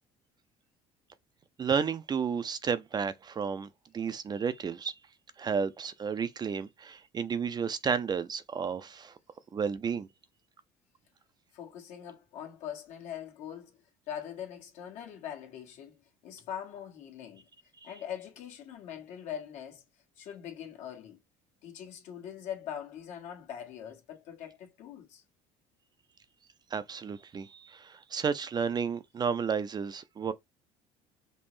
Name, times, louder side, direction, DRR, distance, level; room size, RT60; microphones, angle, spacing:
voice 1, 1.6-3.7 3.9-4.9 5.4-9.1 9.5-10.1 17.8-17.9 26.7-30.3, right 6 dB, 30° right, 0.4 m, -32 dB
voice 2, 11.5-17.5 17.8-19.8 20.2-21.2 21.6-25.2, left 9 dB, 65° left, 1.4 m, -42 dB
5.3 x 2.0 x 3.1 m
supercardioid pair, 80°, 13 cm